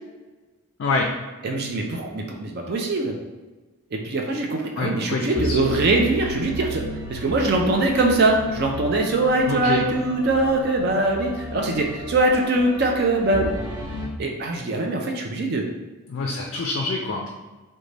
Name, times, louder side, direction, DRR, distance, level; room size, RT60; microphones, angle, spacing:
voice 1, 1.4-3.1 3.9-6.8 7.1-13.5 14.2-15.6, right 2 dB, 45° right, 1 dB, 0.4 m, -22 dB
voice 2, 4.8-6.0 9.5-9.8 16.1-17.3, left 3 dB, 55° left, 1 dB, 0.3 m, -26 dB
sound 1, 5.4-14.1, equal, 30° right, 1.3 m, -34 dB
3.2 x 2.2 x 3.9 m, 1.2 s
head